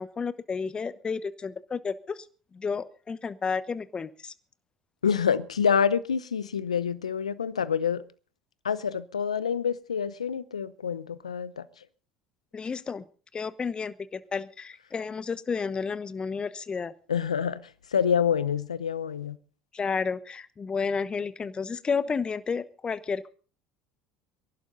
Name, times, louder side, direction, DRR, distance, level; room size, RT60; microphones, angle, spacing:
voice 1, 0.0-2.3 2.5-4.3 12.5-13.0 13.3-16.9 19.7-23.3, left 5 dB, 25° left, 1.0 m, -31 dB
voice 2, 5.0-8.0 8.6-11.6 17.1-17.6 17.9-19.4, left 7 dB, 90° left, 0.7 m, -27 dB
23.5 x 11.5 x 4.0 m
hypercardioid pair, 70°, 3 cm